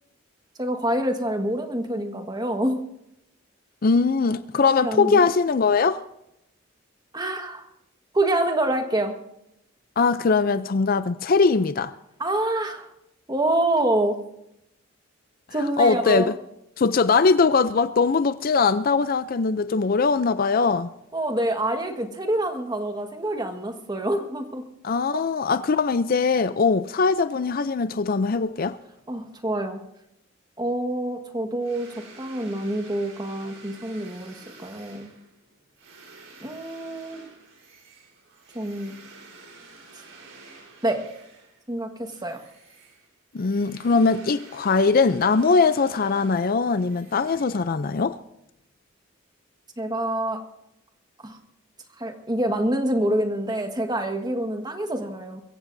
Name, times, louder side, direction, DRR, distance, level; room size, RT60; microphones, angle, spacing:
voice 1, 0.6-2.8 4.6-5.2 7.1-7.7 8.1-9.1 12.2-12.9 13.3-14.2 15.5-16.3 21.1-24.6 25.1-25.2 29.1-29.8 30.6-34.3 34.6-35.1 36.4-37.2 38.5-38.9 39.9-40.0 40.8-41.0 41.7-42.4 49.8-50.4 51.2-51.4 52.0-55.4, right 1 dB, 20° right, 1.5 m, -26 dB
voice 2, 3.8-6.0 10.0-11.9 15.8-16.3 16.8-20.9 24.8-28.8 43.3-48.2, left 4 dB, 45° left, 0.5 m, -21 dB
sound 1, 31.6-41.7 42.0-48.0, right 3 dB, 75° right, 4.1 m, -49 dB
23.0 x 15.0 x 2.7 m
head